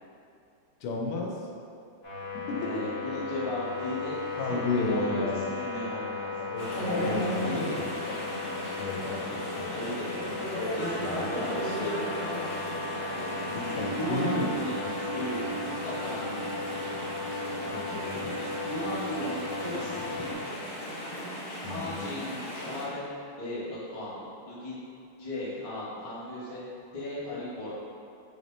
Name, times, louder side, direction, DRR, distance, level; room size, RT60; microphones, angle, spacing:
voice 1, 0.8-1.4 2.5-2.7 4.4-5.4 6.4-7.4 8.8-9.2 9.6-9.7 11.0-11.3 13.5-14.5 17.7-18.3 21.6-22.1, left 3 dB, 90° left, -1 dB, 1.5 m, -32 dB
sound 1, 2.0-20.3, left 2 dB, 35° left, 1.1 m, -36 dB
voice 2, 2.6-4.2 4.5-6.3 7.4-7.7 9.7-10.0 10.8-12.8 13.9-14.8 15.1-16.5 18.6-20.6 21.7-23.1 23.4-24.8 25.2-26.7 26.9-27.7, left 1 dB, 70° left, -9 dB, 0.3 m, -36 dB
Chatter / Stream, 6.6-22.8, equal, 55° left, 0.7 m, -36 dB
4.4 x 3.5 x 2.6 m, 2.5 s
omnidirectional pair, 2.4 m